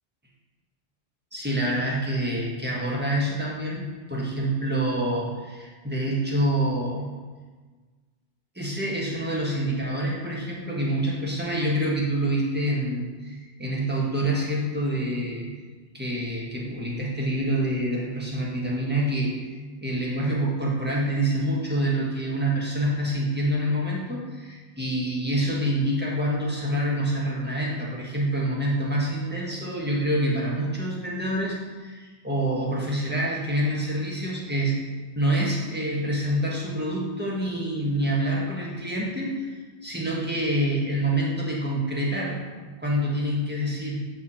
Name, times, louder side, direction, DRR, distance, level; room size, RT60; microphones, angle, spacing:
voice 1, 1.3-7.0 8.5-15.5 15.9-19.3 19.8-34.7 35.1-42.4 42.8-44.0, right 1 dB, 10° right, -5 dB, 1.5 m, -26 dB
8.4 x 4.8 x 4.3 m, 1.4 s
omnidirectional pair, 1.1 m